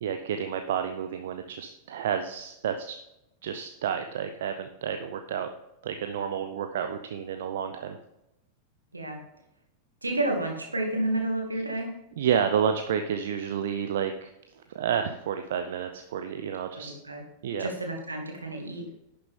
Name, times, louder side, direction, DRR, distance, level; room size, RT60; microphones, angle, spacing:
voice 1, 0.0-3.0 3.4-5.5 5.8-8.0 12.2-14.3 14.7-16.9 17.4-17.7, right 8 dB, 60° right, 7 dB, 0.6 m, -30 dB
voice 2, 10.0-11.9 16.7-17.2 17.6-18.9, right 1 dB, 80° right, 2 dB, 2.1 m, -30 dB
11.0 x 6.8 x 3.6 m, 0.87 s
figure-of-eight pair, 90°, 0 cm